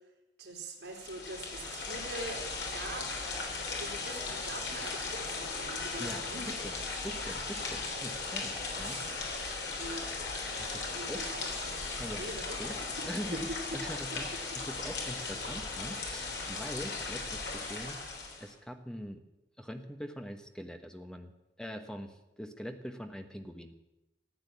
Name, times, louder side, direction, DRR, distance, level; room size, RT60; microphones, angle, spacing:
voice 1, 0.4-2.4 2.7-3.1 3.8-6.7 8.7-9.1 9.8-10.1 10.9-11.7 12.2-13.4 13.7-13.8 14.1-14.4 15.3-15.4, right 2 dB, 85° right, 0 dB, 3.3 m, -43 dB
sound 1, 0.9-18.5, left 3 dB, 75° left, 3.3 m, -37 dB
voice 2, 6.0-9.0 10.6-11.2 12.0-12.3 12.6-12.7 13.0-14.3 14.6-18.0 18.4-19.2 19.6-23.7, equal, 5° left, 6 dB, 1.1 m, -43 dB
14.5 x 8.8 x 8.5 m, 0.97 s
head